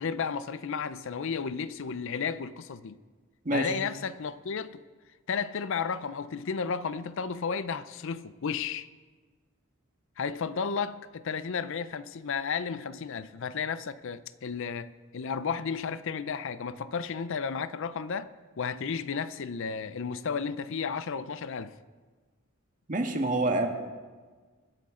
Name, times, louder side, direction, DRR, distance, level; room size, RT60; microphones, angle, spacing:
voice 1, 0.0-3.0 3.5-4.8 5.3-8.9 10.2-18.3 18.6-21.7, left 6 dB, 65° left, 0.5 m, -33 dB
voice 2, 22.9-23.7, right 2 dB, 40° right, 1.5 m, -27 dB
24.0 x 10.5 x 3.8 m
head